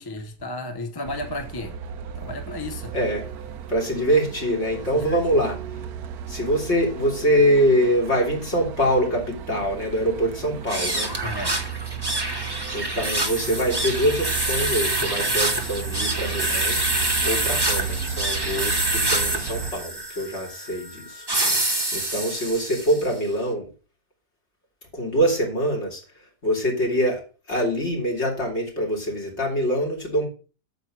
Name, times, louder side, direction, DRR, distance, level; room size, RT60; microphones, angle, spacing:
voice 1, 0.0-1.8 2.1-2.9 4.9-5.4 11.2-11.6, left 2 dB, 20° left, 0.7 m, -33 dB
Truck, 1.1-19.7, right 7 dB, 70° right, 1.2 m, -34 dB
voice 2, 2.9-3.3 3.7-5.6 6.3-11.1 12.3-16.8 17.2-21.3 21.5-23.7 24.9-26.0 26.4-27.2 27.5-30.3, equal, 40° left, 3.5 m, -24 dB
sound 1, 10.6-23.1, right 1 dB, 15° right, 1.2 m, -26 dB
9.0 x 6.8 x 6.2 m
omnidirectional pair, 1.7 m